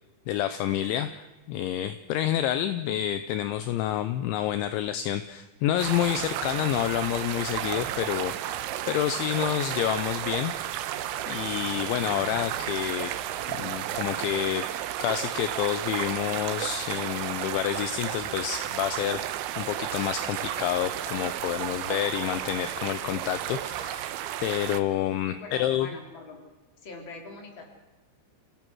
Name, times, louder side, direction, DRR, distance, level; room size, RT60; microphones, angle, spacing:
voice 1, 0.3-10.5 11.3-13.1 13.5-14.7 15.0-24.1 24.4-25.9, left 11 dB, 80° left, 11 dB, 2.9 m, -29 dB
sound 1, 5.8-24.8, right 12 dB, 75° right, 3.1 m, -33 dB
voice 2, 25.3-26.4 26.8-27.7, left 3 dB, 30° left, 2 dB, 3.3 m, -43 dB
28.5 x 17.0 x 6.3 m, 1.1 s
omnidirectional pair, 5.8 m